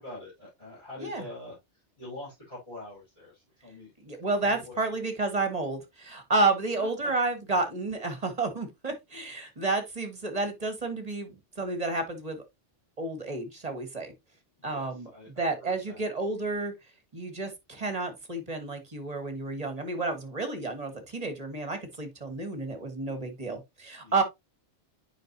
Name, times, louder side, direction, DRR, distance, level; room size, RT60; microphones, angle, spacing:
voice 1, 0.0-1.6 2.0-3.9 4.4-5.1 6.8-7.1 14.6-16.0 24.0-24.2, left 1 dB, 25° left, 5.2 m, -45 dB
voice 2, 4.0-12.4 13.0-14.1 14.6-15.1 15.4-16.7 17.1-24.2, right 3 dB, 35° right, 1.7 m, -31 dB
8.9 x 5.3 x 2.7 m
omnidirectional pair, 1.2 m